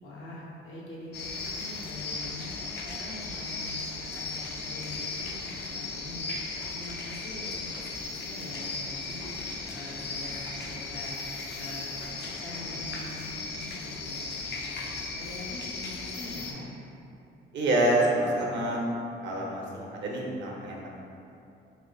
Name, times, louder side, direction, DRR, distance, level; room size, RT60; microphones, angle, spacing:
voice 1, 0.0-3.7 4.1-6.3 6.7-7.5 7.8-9.4 9.7-11.1 11.5-14.6 15.2-16.7, left 1 dB, 75° left, -5 dB, 0.8 m, -43 dB
sound 1, 1.1-16.5, left 3 dB, 60° left, 0.4 m, -36 dB
voice 2, 17.5-18.8 19.2-20.9, right 1 dB, 65° right, -3 dB, 0.7 m, -27 dB
4.2 x 2.5 x 2.3 m, 2.7 s
cardioid pair, 90°, 20 cm